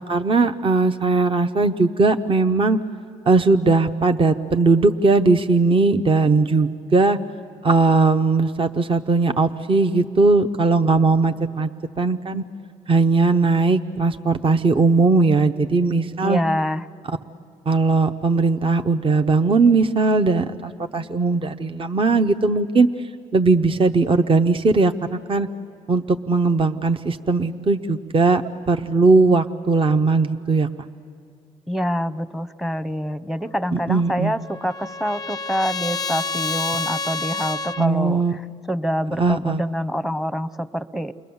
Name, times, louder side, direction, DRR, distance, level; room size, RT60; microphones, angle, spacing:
voice 1, 0.0-2.8 3.3-7.2 7.6-11.7 12.0-12.4 12.9-16.4 17.7-22.9 23.3-25.5 25.9-28.4 28.7-30.7 33.7-34.3 37.8-38.4 39.2-39.6, right 3 dB, 35° right, 7 dB, 0.8 m, -19 dB
voice 2, 16.2-16.9 31.7-38.4 38.7-41.1, equal, ahead, 15 dB, 0.9 m, -26 dB
Trumpet, 34.0-37.9, left 4 dB, 25° left, 0.5 m, -29 dB
29.0 x 21.5 x 7.1 m, 2.3 s
supercardioid pair, 60°, 15 cm